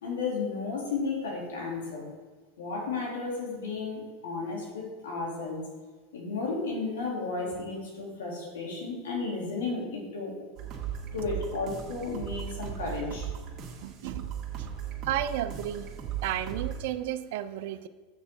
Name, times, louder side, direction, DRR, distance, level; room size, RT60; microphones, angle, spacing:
voice 1, 0.0-2.0 2.6-5.7 6.1-10.4 11.1-13.3, left 4 dB, 85° left, -2 dB, 2.8 m, -33 dB
sound 1, 10.6-16.8, right 8 dB, 40° right, 1.8 m, -37 dB
voice 2, 13.8-14.3 14.6-14.7 15.0-15.9 16.2-17.9, right 12 dB, 70° right, 11 dB, 0.5 m, -33 dB
7.5 x 6.8 x 4.3 m, 1.3 s
hypercardioid pair, 105°, 0 cm